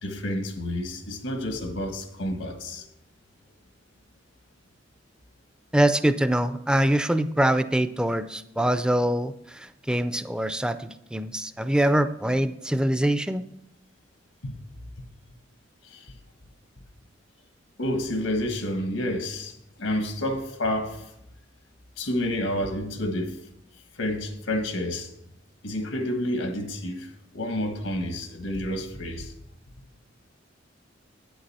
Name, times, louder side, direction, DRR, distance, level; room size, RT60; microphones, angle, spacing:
voice 1, 0.0-2.8 14.4-14.6 17.8-19.5 19.8-21.0 22.0-23.3 24.0-25.1 25.6-27.1 27.3-29.3, left 1 dB, 90° left, 1.4 m, -29 dB
voice 2, 5.7-13.4, right 1 dB, 5° right, 0.4 m, -24 dB
8.8 x 7.9 x 4.2 m
head